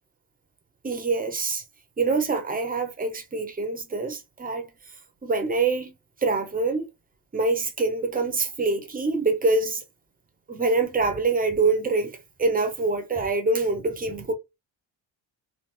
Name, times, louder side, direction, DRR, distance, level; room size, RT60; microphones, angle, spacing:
voice 1, 0.8-1.6 2.0-4.7 5.2-5.9 6.2-6.9 7.3-9.8 10.5-14.3, right 3 dB, 20° right, 0.6 m, -25 dB
3.4 x 2.9 x 3.0 m
wide cardioid pair, 180°, 46 cm